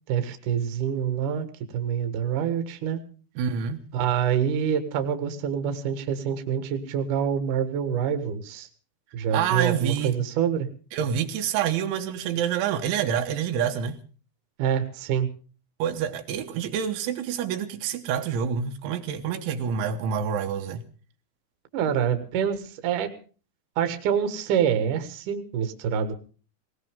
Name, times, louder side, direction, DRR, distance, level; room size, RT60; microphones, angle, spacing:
voice 1, 0.1-1.5 1.7-3.0 3.9-8.7 9.1-10.7 14.6-15.3 21.7-23.1 23.8-26.1, right 8 dB, 55° right, 2.7 m, -26 dB
voice 2, 3.4-3.8 9.3-10.2 10.9-14.0 15.8-20.8, right 8 dB, 80° right, 3.6 m, -27 dB
19.5 x 19.0 x 3.6 m
omnidirectional pair, 5.3 m